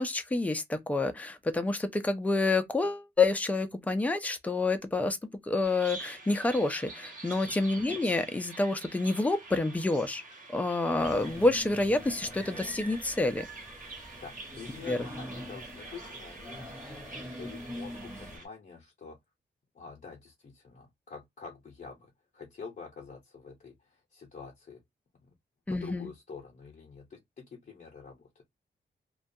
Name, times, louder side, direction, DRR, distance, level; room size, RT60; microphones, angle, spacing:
voice 1, 0.0-5.2 5.4-10.2 10.5-13.4 14.9-15.0 25.7-26.1, left 2 dB, 10° left, 0.3 m, -28 dB
Bird vocalization bird call bird song, 5.6-18.5, right 3 dB, 45° right, 1.0 m, -46 dB
sound 1, 11.0-18.4, equal, 15° right, 0.9 m, -44 dB
voice 2, 14.2-19.2 19.7-24.8 25.2-25.3 25.7-28.4, left 5 dB, 45° left, 0.6 m, -47 dB
2.3 x 2.2 x 2.6 m
wide cardioid pair, 140°, 19 cm